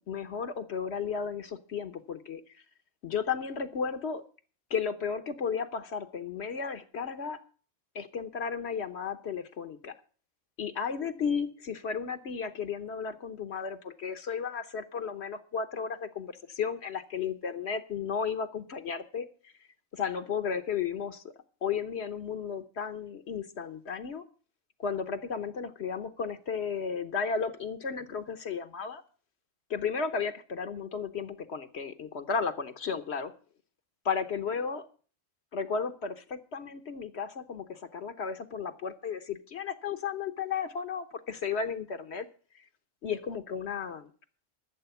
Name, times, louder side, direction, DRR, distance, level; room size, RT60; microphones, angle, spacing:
voice 1, 0.1-2.6 3.0-4.2 4.7-7.4 7.9-9.9 10.6-19.5 19.9-21.3 21.6-24.2 24.8-29.0 29.7-33.3 34.0-34.9 35.5-42.3 42.5-42.6 43.0-44.1, left 6 dB, 60° left, 8 dB, 1.1 m, -34 dB
12.5 x 7.4 x 6.9 m, 0.42 s
omnidirectional pair, 1.3 m